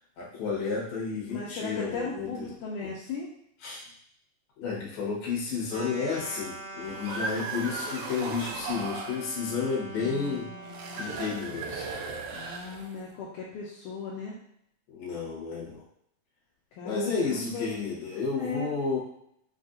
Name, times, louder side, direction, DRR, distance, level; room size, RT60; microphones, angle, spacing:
voice 1, 0.2-2.5 3.6-3.8 4.6-10.5 10.9-11.9 12.4-12.7 14.9-15.8 16.8-19.0, left 5 dB, 60° left, -4 dB, 2.1 m, -32 dB
voice 2, 1.3-3.3 10.0-11.0 12.3-14.3 16.8-17.7 18.3-18.7, left 4 dB, 80° left, -5 dB, 2.0 m, -37 dB
sound 1, 5.7-11.5, right 1 dB, 60° right, 1.3 m, -43 dB
sound 2, 6.8-9.2 10.6-13.1, right 4 dB, 85° right, 1.6 m, -37 dB
5.5 x 2.5 x 2.5 m, 0.72 s
omnidirectional pair, 3.9 m